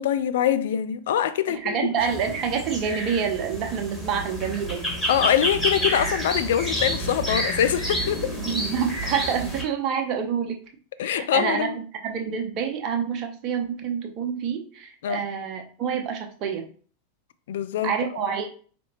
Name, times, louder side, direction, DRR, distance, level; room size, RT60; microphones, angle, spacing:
voice 1, 0.0-1.8 5.1-8.3 11.0-11.8 15.0-15.2 17.5-17.9, left 10 dB, 65° left, 0.3 m, -24 dB
voice 2, 1.5-4.8 8.4-10.6 11.0-16.7 17.8-18.5, right 7 dB, 45° right, 0.8 m, -27 dB
sound 1, 2.0-9.6, equal, 5° left, 1.8 m, -29 dB
4.0 x 3.4 x 2.9 m
figure-of-eight pair, 90°, 0 cm